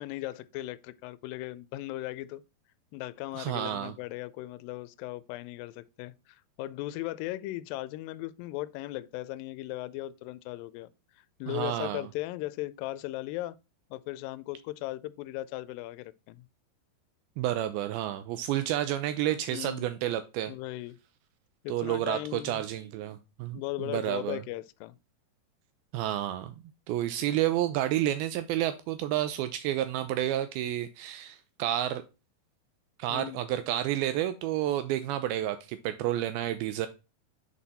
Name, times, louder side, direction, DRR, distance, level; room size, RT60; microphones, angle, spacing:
voice 1, 0.0-2.4 2.9-10.9 11.2-13.6 13.9-16.5 19.5-19.9 20.5-21.0 21.6-22.6 23.5-25.0 33.1-33.4, left 16 dB, 80° left, 2.1 m, -37 dB
voice 2, 3.4-3.9 11.5-12.1 17.4-20.5 21.7-24.4 25.9-26.6 26.9-32.0 33.0-36.9, right 12 dB, 85° right, 2.4 m, -30 dB
7.4 x 4.3 x 4.1 m
omnidirectional pair, 4.5 m